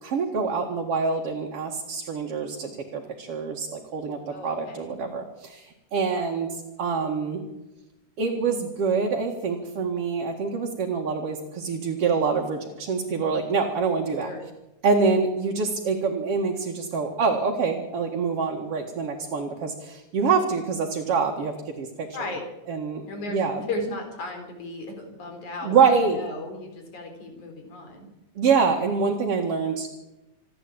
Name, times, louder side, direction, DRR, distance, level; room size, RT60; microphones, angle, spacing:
voice 1, 0.0-7.4 8.2-14.3 14.8-22.1 22.7-23.6 25.6-26.2 28.4-29.9, right 5 dB, 55° right, 1 dB, 2.8 m, -25 dB
voice 2, 4.3-5.0 14.2-14.5 22.1-22.4 23.1-28.1, left 2 dB, 80° left, 4 dB, 5.5 m, -35 dB
27.0 x 11.0 x 8.7 m, 0.97 s
omnidirectional pair, 3.4 m